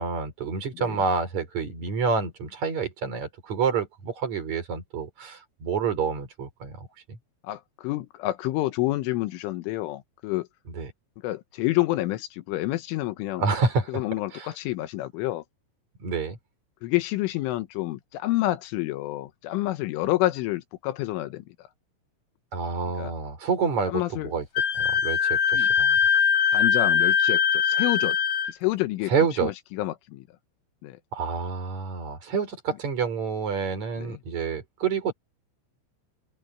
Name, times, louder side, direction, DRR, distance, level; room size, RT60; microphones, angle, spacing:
voice 1, 0.0-7.2 10.7-10.9 13.4-13.9 14.3-14.5 16.0-16.4 22.5-24.5 24.7-26.0 29.1-29.5 31.1-35.1, right 5 dB, 35° right, 5.5 m, -28 dB
voice 2, 7.4-10.5 11.2-13.4 13.9-15.4 16.8-21.5 23.0-23.1 23.9-24.3 25.5-25.7 26.5-28.2 28.5-29.1 29.4-30.3 30.8-31.0 34.0-34.2, left 17 dB, 80° left, 3.5 m, -28 dB
Wind instrument woodwind instrument, 24.6-28.5, left 7 dB, 45° left, 3.7 m, -22 dB
open air
omnidirectional pair, 5.7 m